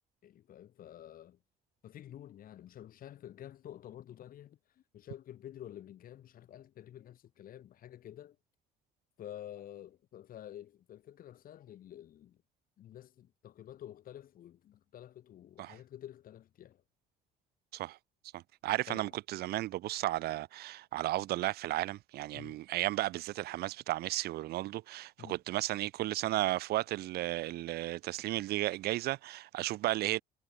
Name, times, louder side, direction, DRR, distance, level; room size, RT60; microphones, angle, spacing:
voice 1, 0.2-1.4 1.8-8.4 9.2-12.4 12.8-16.8 18.9-19.2 22.3-22.6 25.2-25.4, left 11 dB, 55° left, 1.6 m, -50 dB
voice 2, 18.3-30.2, right 16 dB, 70° right, 0.6 m, -34 dB
cardioid pair, 110°, 17 cm